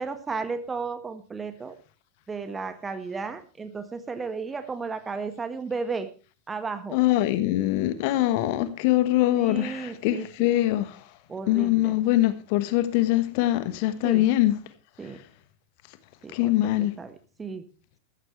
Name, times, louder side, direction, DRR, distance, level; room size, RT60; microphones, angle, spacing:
voice 1, 0.0-1.7 2.3-6.1 6.5-7.0 9.3-10.5 11.3-12.0 14.0-14.3 15.0-15.2 16.2-17.7, right 4 dB, 15° right, 1.5 m, -34 dB
voice 2, 6.9-11.0 11.5-14.6 16.3-16.9, left 15 dB, 45° left, 1.3 m, -23 dB
14.5 x 14.0 x 3.2 m
figure-of-eight pair, 90°, 0 cm